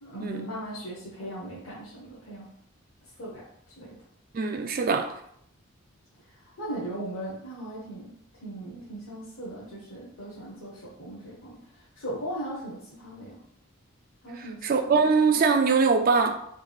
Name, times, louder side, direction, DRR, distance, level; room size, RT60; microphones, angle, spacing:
voice 1, 0.0-2.5 3.2-3.4 3.8-3.9 6.4-8.2 8.4-13.4 14.2-15.1, right 1 dB, 90° left, 0.9 m, -38 dB
voice 2, 4.3-5.1 14.6-16.3, right 4 dB, 40° right, 0.3 m, -22 dB
3.4 x 3.3 x 2.3 m
head